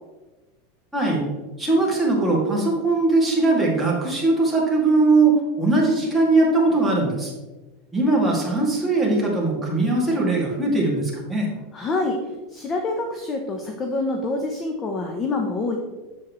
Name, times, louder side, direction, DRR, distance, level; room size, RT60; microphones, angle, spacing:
voice 1, 0.9-1.2 1.6-7.3 7.9-11.5, right 2 dB, 5° right, -4 dB, 2.3 m, -20 dB
voice 2, 11.7-15.8, left 2 dB, 25° left, 3 dB, 0.9 m, -26 dB
7.5 x 7.5 x 3.2 m, 1.2 s
supercardioid pair, 135°, 0 cm